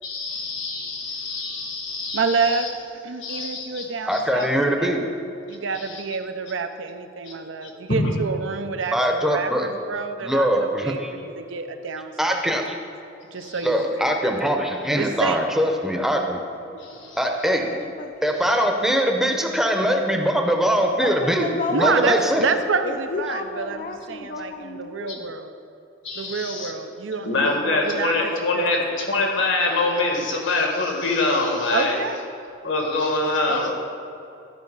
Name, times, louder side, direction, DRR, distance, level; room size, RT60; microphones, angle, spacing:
voice 1, 0.0-2.7 3.2-3.8 4.1-4.2 5.7-6.0 7.2-7.3 7.6-8.1 13.3-13.7 16.8-17.2 18.5-18.6 25.1-25.2 26.0-26.7 27.2-32.0 32.6-33.7, left 2 dB, 75° left, 0 dB, 1.7 m, -25 dB
voice 2, 2.1-2.7 3.0-5.1 5.4-12.3 13.3-14.0 15.0-15.4 16.7-17.0 21.7-23.8 24.1-25.5 26.2-27.5 27.9-28.8 31.7-32.3, right 4 dB, 80° right, 8 dB, 0.6 m, -28 dB
voice 3, 4.1-5.0 8.9-9.7 10.2-11.1 12.2-12.8 13.6-16.4 17.2-17.7 18.2-21.4 21.7-22.5, equal, ahead, 2 dB, 0.7 m, -22 dB
voice 4, 17.7-18.1 21.0-25.3 33.5-33.7, left 3 dB, 45° left, 5 dB, 0.4 m, -32 dB
12.0 x 5.1 x 5.5 m, 2.7 s
head